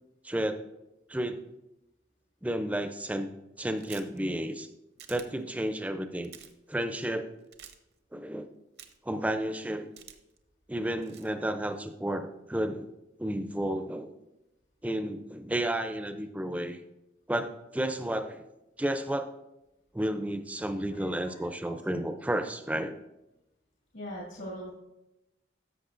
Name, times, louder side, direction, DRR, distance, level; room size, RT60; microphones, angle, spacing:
voice 1, 0.2-0.6 1.1-1.4 2.4-3.3 3.6-4.7 5.1-6.3 6.7-7.3 8.1-8.5 9.1-9.9 10.7-12.9 13.2-14.1 14.8-16.8 17.3-18.4 18.8-19.3 19.9-23.0, right 1 dB, 10° right, 8 dB, 0.4 m, -32 dB
sound 1, 3.8-4.2 5.0-5.3 6.2-6.5 7.5-7.7 8.8-9.1 10.0-10.4 11.0-11.3, right 9 dB, 60° right, 0.7 m, -48 dB
voice 2, 20.9-21.8 23.9-24.7, equal, 80° left, -5 dB, 2.0 m, -42 dB
13.0 x 6.2 x 2.5 m, 0.92 s
head